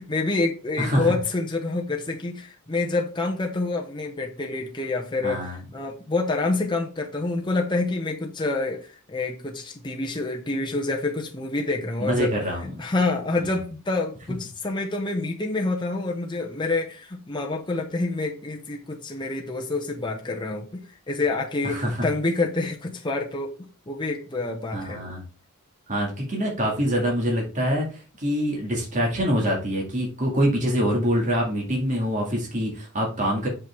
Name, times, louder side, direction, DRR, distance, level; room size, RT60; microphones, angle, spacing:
voice 1, 0.0-25.0, left 3 dB, 20° left, 1 dB, 0.8 m, -27 dB
voice 2, 0.8-1.1 5.2-5.6 12.0-12.6 13.4-13.6 21.6-22.1 24.7-25.2 25.9-33.5, equal, 35° right, -1 dB, 2.0 m, -25 dB
5.9 x 5.5 x 3.5 m, 0.34 s
head